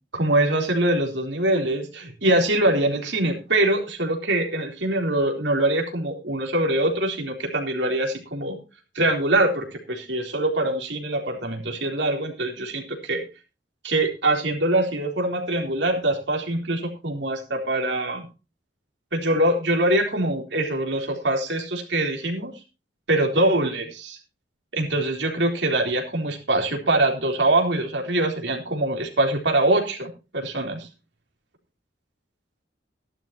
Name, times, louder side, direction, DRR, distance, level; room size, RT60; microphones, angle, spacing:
voice 1, 0.1-8.6 9.0-13.2 13.8-18.2 19.1-22.5 23.1-24.2 24.7-30.9, right 1 dB, 70° right, 2 dB, 3.6 m, -23 dB
15.5 x 12.0 x 2.9 m, 0.30 s
head